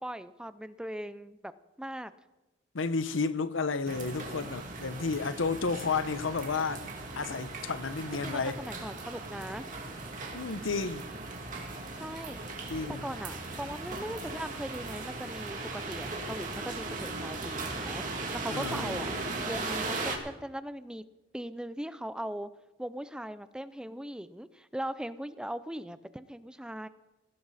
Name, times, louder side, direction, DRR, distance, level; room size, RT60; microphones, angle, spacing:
voice 1, 0.0-1.5 1.8-2.1 8.2-9.7 11.9-12.4 13.0-19.1 19.5-21.0 21.3-22.5 22.8-26.9, right 1 dB, 5° right, 0.5 m, -39 dB
voice 2, 2.7-8.6 10.3-11.0 12.7-13.0 18.5-19.0, left 4 dB, 80° left, 0.8 m, -32 dB
sound 1, 3.8-20.2, right 3 dB, 45° right, 2.4 m, -38 dB
18.5 x 16.0 x 4.2 m
head